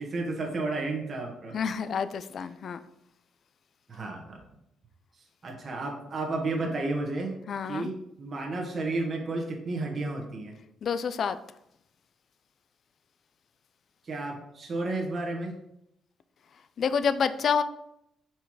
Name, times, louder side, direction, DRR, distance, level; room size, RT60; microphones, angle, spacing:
voice 1, 0.0-1.6 3.9-4.4 5.4-7.4 7.7-10.5 14.0-15.6, right 2 dB, 40° right, 0 dB, 1.4 m, -32 dB
voice 2, 1.5-2.8 7.5-7.9 10.8-11.4 16.8-17.6, left 6 dB, 55° left, 12 dB, 0.4 m, -28 dB
5.5 x 4.5 x 4.8 m, 0.80 s
cardioid pair, 90°, 0 cm